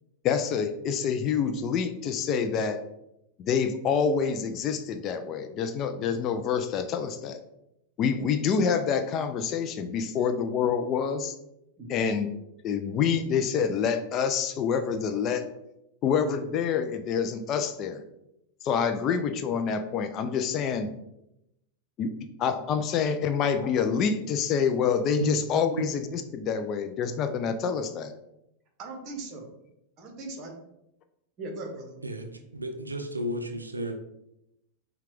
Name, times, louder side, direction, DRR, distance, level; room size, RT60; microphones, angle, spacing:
voice 1, 0.2-2.8 3.4-7.4 8.0-11.3 11.9-12.3 12.6-15.5 16.0-18.0 18.6-20.9 22.0-22.1 22.4-28.1, left 6 dB, 35° left, 8 dB, 0.4 m, -27 dB
voice 2, 11.8-12.1 28.8-29.5 30.0-30.5 31.4-31.9, right 2 dB, 35° right, 3 dB, 1.0 m, -39 dB
voice 3, 32.0-33.9, right 1 dB, 80° right, 6 dB, 0.4 m, -32 dB
5.6 x 2.3 x 3.3 m, 0.84 s
figure-of-eight pair, 90°, 0 cm